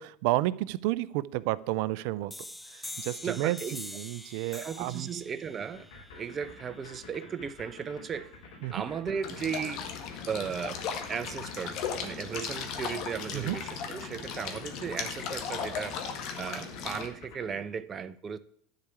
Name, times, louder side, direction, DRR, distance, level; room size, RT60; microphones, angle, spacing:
voice 1, 0.0-2.3 3.0-5.1 8.6-8.7 13.3-13.6, right 17 dB, 65° right, 0.5 m, -31 dB
sound 1, 2.3-7.7, left 2 dB, 5° left, 0.8 m, -45 dB
voice 2, 3.2-3.8 4.5-5.9 6.2-8.3 8.7-9.8 10.3-10.8 11.1-16.0 16.4-18.4, right 7 dB, 30° right, 0.8 m, -36 dB
sound 2, 5.7-17.6, left 4 dB, 75° left, 3.4 m, -49 dB
sound 3, 9.2-17.1, left 6 dB, 55° left, 1.8 m, -37 dB
10.5 x 4.9 x 8.3 m
hypercardioid pair, 100°, 0 cm